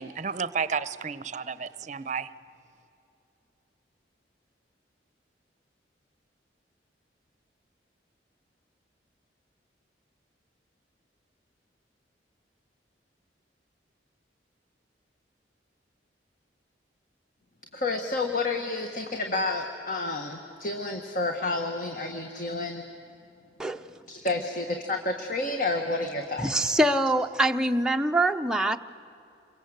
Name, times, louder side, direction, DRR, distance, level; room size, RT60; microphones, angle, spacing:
voice 1, 0.0-2.3, right 5 dB, 40° right, 16 dB, 0.7 m, -32 dB
voice 2, 17.7-22.8 24.1-26.8, left 2 dB, 50° left, 4 dB, 1.6 m, -30 dB
voice 3, 23.6-23.9 26.4-28.8, right 1 dB, 5° right, 4 dB, 0.6 m, -24 dB
27.5 x 24.0 x 8.0 m, 2.8 s
head